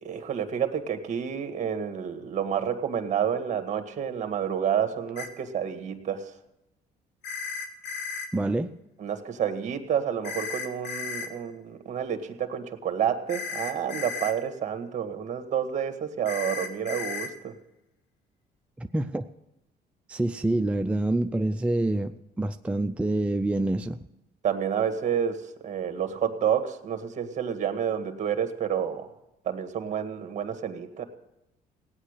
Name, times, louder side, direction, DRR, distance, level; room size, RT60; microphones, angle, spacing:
voice 1, 0.0-6.3 9.0-17.5 24.4-29.1 29.5-31.0, right 8 dB, 45° right, 1.8 m, -29 dB
sound 1, 5.2-5.3 7.2-8.3 10.2-11.3 13.3-14.3 16.2-17.3, left 5 dB, 85° left, 1.7 m, -34 dB
voice 2, 8.3-8.8 18.8-19.3 20.1-24.0, right 2 dB, 5° right, 0.4 m, -27 dB
17.0 x 9.7 x 6.6 m
cardioid pair, 110°, 17 cm